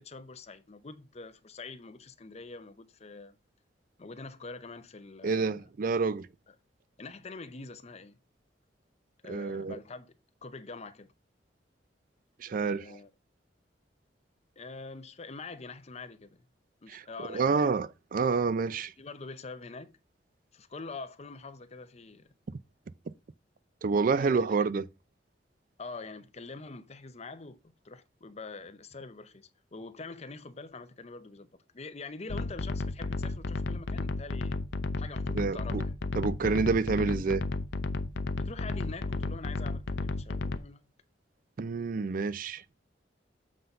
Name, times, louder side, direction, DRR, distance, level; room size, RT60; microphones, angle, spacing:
voice 1, 0.0-3.4 4.0-5.6 7.0-8.2 9.2-10.1 10.4-11.1 12.6-13.1 14.6-16.4 16.8-17.7 19.0-19.9 20.5-22.3 24.2-24.4 25.8-27.6 27.8-34.6 35.0-36.0 38.3-40.9, left 3 dB, 35° left, 0.7 m, -45 dB
voice 2, 5.2-6.3 9.3-9.8 12.4-12.8 16.9-18.9 23.8-24.9 35.4-35.8 36.2-37.4 41.6-42.6, right 4 dB, 50° right, 0.4 m, -28 dB
sound 1, 32.3-40.6, left 3 dB, 75° left, 0.7 m, -33 dB
7.6 x 3.9 x 5.5 m
head